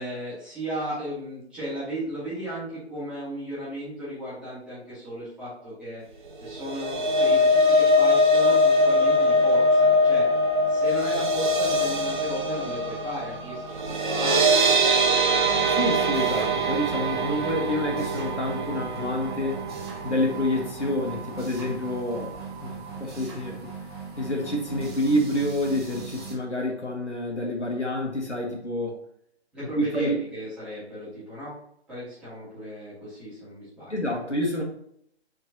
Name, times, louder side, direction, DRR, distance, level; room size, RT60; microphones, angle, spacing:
voice 1, 0.0-6.0 6.4-10.2 10.7-14.8 29.5-31.5 31.9-34.1, right 1 dB, 5° right, -12 dB, 2.4 m, -35 dB
sound 1, 6.5-20.7 21.1-21.3 21.6-21.7, left 1 dB, 45° right, 0.8 m, -22 dB
sound 2, 15.4-26.4, right 5 dB, 25° right, 1.1 m, -39 dB
voice 2, 15.7-19.6 20.0-23.6 24.2-29.0 29.8-30.2 33.9-34.6, left 1 dB, 85° left, 0 dB, 1.9 m, -28 dB
7.3 x 4.5 x 2.9 m, 0.71 s
figure-of-eight pair, 140°, 34 cm